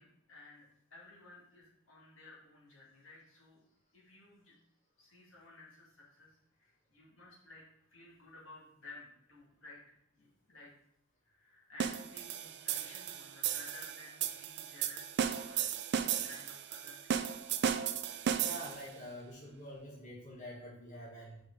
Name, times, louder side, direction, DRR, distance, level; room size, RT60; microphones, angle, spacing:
voice 1, 0.0-3.6 3.9-4.5 5.0-10.7 11.2-15.7 16.0-17.5, left 2 dB, 70° left, -4 dB, 2.2 m, -55 dB
sound 1, 11.8-18.9, right 8 dB, 55° right, 0.4 m, -35 dB
voice 2, 18.4-21.4, equal, 35° left, -5 dB, 1.6 m, -46 dB
5.1 x 4.8 x 4.7 m, 0.73 s
head